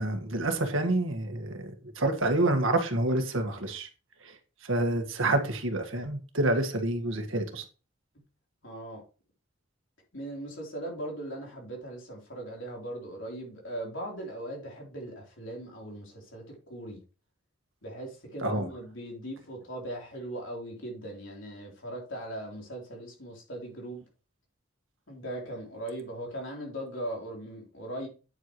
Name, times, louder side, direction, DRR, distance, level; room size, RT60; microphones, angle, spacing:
voice 1, 0.0-3.9 4.2-4.3 4.6-7.6 18.4-18.7, right 2 dB, 75° right, 1.6 m, -28 dB
voice 2, 8.6-9.0 10.1-17.0 17.8-24.0 25.1-28.1, right 1 dB, 70° left, 3.6 m, -39 dB
9.1 x 7.8 x 3.1 m
head